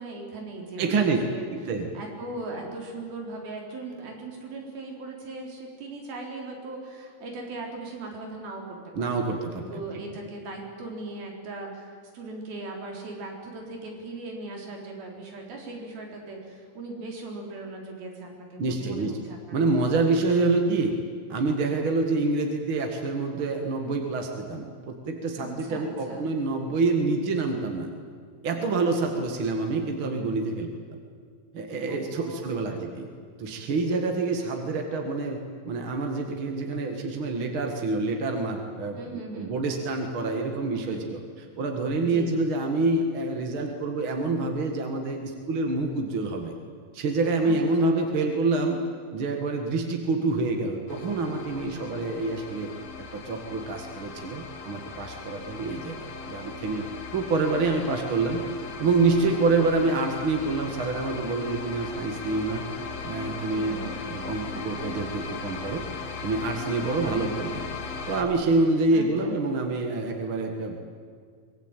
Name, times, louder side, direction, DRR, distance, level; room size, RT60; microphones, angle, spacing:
voice 1, 0.0-1.4 1.9-19.7 25.4-26.3 31.9-32.8 39.0-39.5 40.9-41.1 42.0-42.3 47.4-47.9 51.5-52.0 59.1-59.3 63.5-63.9 67.0-67.4 68.9-69.3, right 2 dB, 90° right, 1 dB, 5.9 m, -39 dB
voice 2, 0.8-1.2 1.5-1.9 9.0-9.8 18.6-19.2 19.5-20.9 21.3-27.9 28.4-31.0 31.5-33.1 33.4-41.2 41.6-46.5 46.9-48.8 49.1-52.7 53.0-56.8 57.1-58.4 58.8-62.6 63.0-65.8 66.2-67.6 68.1-70.8, right 3 dB, 45° right, 3 dB, 2.1 m, -27 dB
sound 1, 50.9-68.2, left 4 dB, 50° left, 2.7 m, -38 dB
24.5 x 20.0 x 9.1 m, 2.1 s
omnidirectional pair, 4.1 m